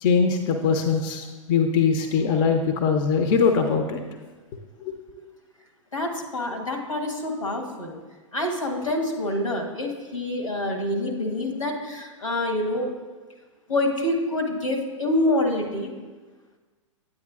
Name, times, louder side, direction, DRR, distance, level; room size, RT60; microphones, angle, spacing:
voice 1, 0.0-4.0 4.8-4.9, left 5 dB, 40° left, 6 dB, 0.6 m, -22 dB
voice 2, 5.9-8.0 8.3-12.9 13.7-15.9, left 1 dB, 85° left, 2 dB, 1.4 m, -26 dB
9.5 x 8.5 x 2.4 m, 1.3 s
figure-of-eight pair, 105°, 17 cm